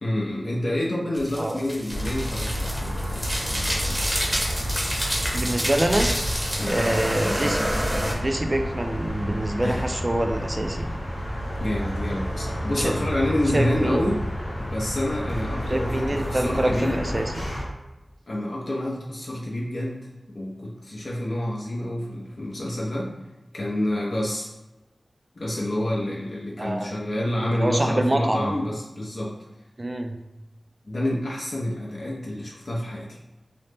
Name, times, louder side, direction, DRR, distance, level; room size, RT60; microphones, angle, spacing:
voice 1, 0.0-4.0 6.6-6.8 9.6-9.9 11.6-14.2 14.7-17.0 18.3-20.1 20.3-23.1 23.5-24.5 25.4-29.3 30.8-33.2, left 1 dB, 65° left, -4 dB, 0.5 m, -28 dB
sound 1, 1.2-8.1, equal, 10° right, 0.7 m, -28 dB
sound 2, 1.9-17.7, equal, 85° left, 0.9 m, -30 dB
voice 2, 5.3-6.1 6.7-7.7 8.2-10.9 12.8-13.0 13.5-14.1 15.7-17.5 26.6-26.9 27.5-28.5 29.8-30.2, right 1 dB, 35° right, 5 dB, 0.4 m, -26 dB
2.8 x 2.0 x 3.3 m, 1.0 s
cardioid pair, 40°, 0 cm